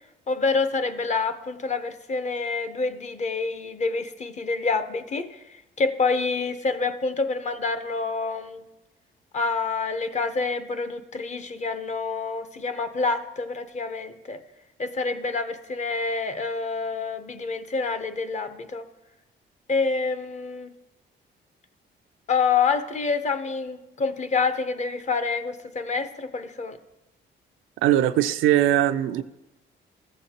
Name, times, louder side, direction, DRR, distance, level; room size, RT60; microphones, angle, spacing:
voice 1, 0.3-8.6 9.3-14.4 14.8-18.9 19.7-20.7 22.3-26.8, left 4 dB, 35° left, 10 dB, 0.7 m, -27 dB
voice 2, 27.8-29.2, right 12 dB, 85° right, 10 dB, 0.5 m, -20 dB
14.0 x 7.7 x 2.8 m, 0.96 s
cardioid pair, 90°, 20 cm